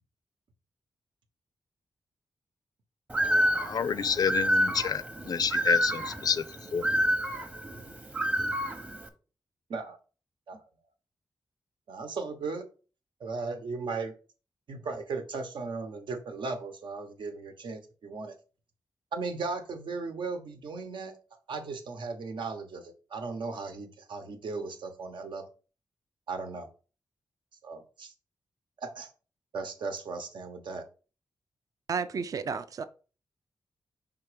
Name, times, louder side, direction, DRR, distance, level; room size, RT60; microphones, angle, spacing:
Bird, 3.1-9.1, equal, 15° right, 0.8 m, -29 dB
voice 1, 3.6-6.4 6.7-6.9, left 6 dB, 55° left, 0.4 m, -29 dB
voice 2, 11.9-12.7 13.2-14.1 14.7-18.3 19.1-21.2 21.5-25.5 26.3-26.7 27.6-28.1 28.8-29.1 29.5-30.8, right 4 dB, 80° right, 1.1 m, -36 dB
voice 3, 31.9-32.8, right 5 dB, 50° right, 0.4 m, -32 dB
5.7 x 3.7 x 5.0 m
wide cardioid pair, 155°, 8 cm